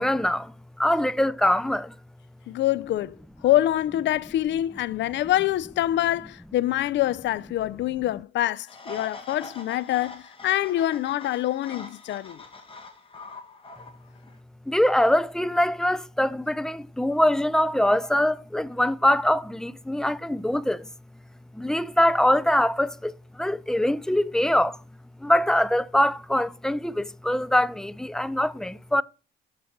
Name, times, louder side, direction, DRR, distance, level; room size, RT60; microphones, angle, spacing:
voice 1, 0.0-1.9 14.7-20.9 21.5-24.8 25.2-29.0, left 1 dB, 5° left, 0.4 m, -23 dB
voice 2, 2.5-3.2 3.4-12.4, left 13 dB, 65° left, 0.4 m, -25 dB
sound 1, 8.7-14.4, left 3 dB, 25° left, 1.8 m, -43 dB
6.5 x 5.1 x 5.8 m
cardioid pair, 90°, 20 cm